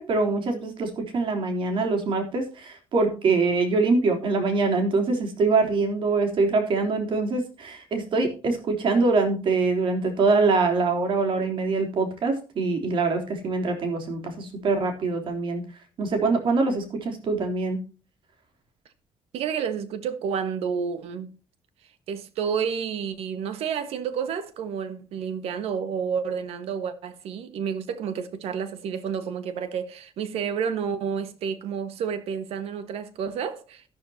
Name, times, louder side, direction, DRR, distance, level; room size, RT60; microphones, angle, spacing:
voice 1, 0.0-15.6 16.0-17.8, right 3 dB, 60° right, 3.6 m, -24 dB
voice 2, 19.3-21.3 22.1-33.8, right 7 dB, 90° right, 1.5 m, -30 dB
12.5 x 12.0 x 2.9 m
cardioid pair, 140°, 10 cm